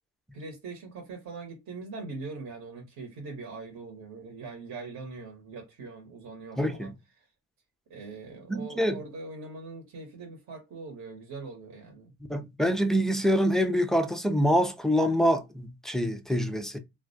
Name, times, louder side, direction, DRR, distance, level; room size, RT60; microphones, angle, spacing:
voice 1, 0.3-6.9 7.2-7.3 7.9-12.1, right 3 dB, 45° right, 0.9 m, -42 dB
voice 2, 6.6-6.9 8.5-9.0 12.3-16.8, equal, ahead, 0.3 m, -25 dB
2.2 x 2.2 x 2.6 m
supercardioid pair, 70°, 37 cm